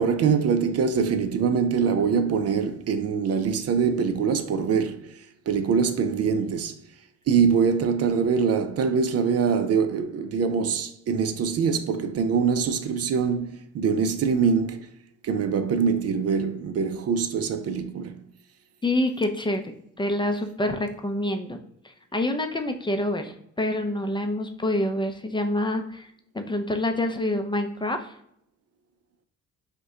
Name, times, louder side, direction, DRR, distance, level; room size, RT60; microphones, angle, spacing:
voice 1, 0.0-6.8 7.3-14.9 15.2-18.2, right 6 dB, 55° right, 0.5 m, -24 dB
voice 2, 18.8-21.6 21.8-28.1, left 1 dB, 15° left, 0.5 m, -27 dB
5.2 x 2.2 x 3.6 m
cardioid pair, 90°, 30 cm